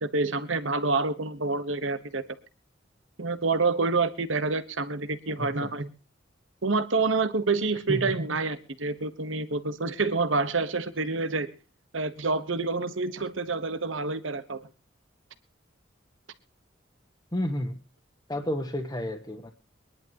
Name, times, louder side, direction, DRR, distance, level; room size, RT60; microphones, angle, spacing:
voice 1, 0.0-2.2 3.2-5.9 6.6-11.5 11.9-14.6, right 3 dB, 80° right, 11 dB, 1.2 m, -27 dB
voice 2, 5.4-5.7 7.9-8.0 17.3-17.8 18.3-19.5, equal, 20° left, 0 dB, 1.3 m, -31 dB
24.0 x 11.0 x 2.9 m, 0.32 s
head